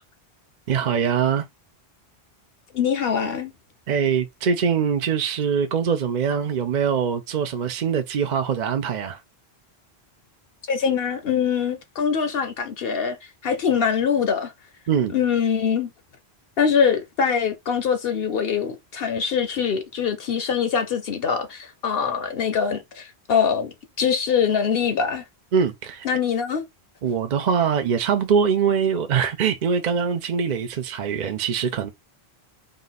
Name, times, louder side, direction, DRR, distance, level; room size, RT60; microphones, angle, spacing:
voice 1, 0.7-1.4 3.9-9.2 14.9-15.1 25.5-26.1 27.0-31.9, right 7 dB, 55° right, 0.5 m, -23 dB
voice 2, 2.7-3.5 10.6-13.2 13.4-14.5 15.1-15.9 16.6-25.2 26.0-26.6, left 7 dB, 65° left, 0.8 m, -23 dB
3.8 x 2.6 x 4.0 m
omnidirectional pair, 1.1 m